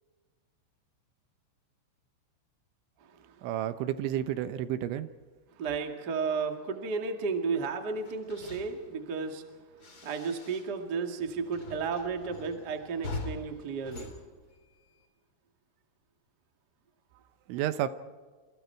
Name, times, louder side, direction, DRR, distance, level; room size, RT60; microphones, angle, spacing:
voice 1, 3.4-5.1 17.5-17.9, right 11 dB, 80° right, 11 dB, 3.2 m, -31 dB
voice 2, 5.6-9.4 10.0-14.1, right 5 dB, 45° right, 4 dB, 1.2 m, -33 dB
sound 1, 8.0-10.9 11.2-15.1, left 3 dB, 30° left, 3.4 m, -44 dB
27.5 x 27.0 x 4.6 m, 1.5 s
omnidirectional pair, 5.7 m